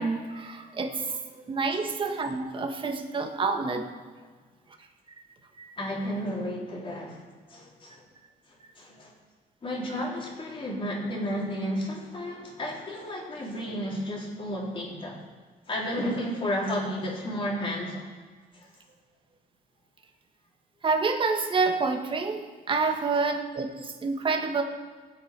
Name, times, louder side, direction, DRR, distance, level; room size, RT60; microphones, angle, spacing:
voice 1, 0.0-3.9 5.6-5.7 20.8-24.6, right 4 dB, 30° right, 4 dB, 1.5 m, -28 dB
voice 2, 5.8-7.2 7.5-8.0 8.5-9.1 9.6-15.2 15.7-18.1 18.5-18.7, equal, 30° left, -3 dB, 3.8 m, -32 dB
17.0 x 8.1 x 6.0 m, 1.4 s
cardioid pair, 110°, 17 cm